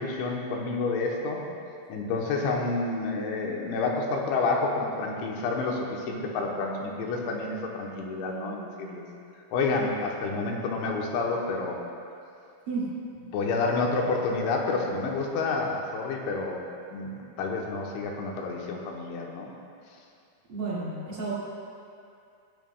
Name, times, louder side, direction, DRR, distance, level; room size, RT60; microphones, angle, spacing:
voice 1, 0.0-1.4 1.9-9.0 9.5-11.8 13.3-16.6 16.9-19.5, left 3 dB, 80° left, -1 dB, 3.3 m, -29 dB
voice 2, 20.5-21.3, right 3 dB, 40° right, -9 dB, 1.7 m, -31 dB
19.5 x 9.2 x 2.4 m, 2.5 s
omnidirectional pair, 5.5 m